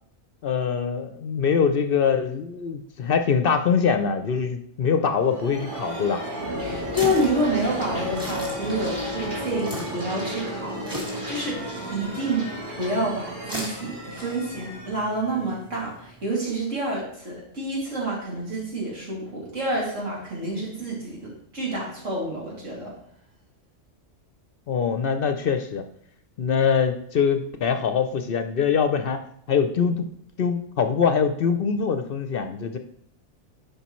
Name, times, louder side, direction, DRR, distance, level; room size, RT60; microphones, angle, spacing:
voice 1, 0.4-6.2 24.7-25.8 26.4-29.2 29.5-30.1 30.4-32.8, left 6 dB, 60° left, 8 dB, 0.7 m, -23 dB
sound 1, 4.8-16.3, equal, 45° right, 2.0 m, -33 dB
sound 2, 6.5-16.3, equal, 5° right, 1.8 m, -40 dB
voice 2, 6.6-12.5 12.8-22.9, right 1 dB, 90° right, -4 dB, 2.8 m, -28 dB
11.0 x 5.3 x 3.1 m, 0.68 s
omnidirectional pair, 1.3 m